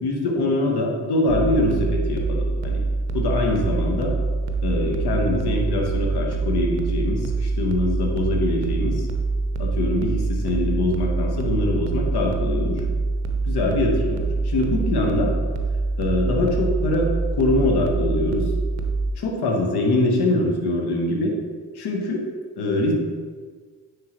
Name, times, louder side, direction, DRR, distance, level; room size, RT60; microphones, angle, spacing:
voice 1, 0.0-2.8 3.1-4.1 4.6-9.0 9.6-12.8 13.5-15.3 16.0-18.5 19.2-21.3 21.7-22.2 22.6-22.9, left 2 dB, 55° left, 1 dB, 1.3 m, -23 dB
sound 1, 1.3-19.1, right 3 dB, 85° right, 0.6 m, -25 dB
9.4 x 3.6 x 3.1 m, 1.5 s
hypercardioid pair, 40°, 46 cm